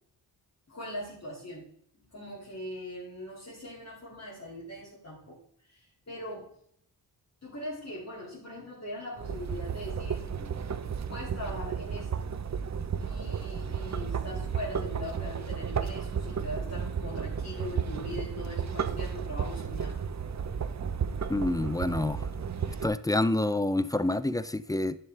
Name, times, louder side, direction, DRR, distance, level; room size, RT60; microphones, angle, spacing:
voice 1, 0.7-1.7 1.9-5.4 5.7-6.6 7.4-10.6 11.1-12.3 13.0-20.0, left 1 dB, 35° left, -6 dB, 2.4 m, -41 dB
sound 1, 9.2-22.9, right 6 dB, 40° right, 0.6 m, -33 dB
voice 2, 21.3-22.3 22.7-25.0, left 2 dB, 10° left, 14 dB, 0.3 m, -28 dB
10.5 x 6.4 x 3.3 m, 0.66 s
wide cardioid pair, 100°, 42 cm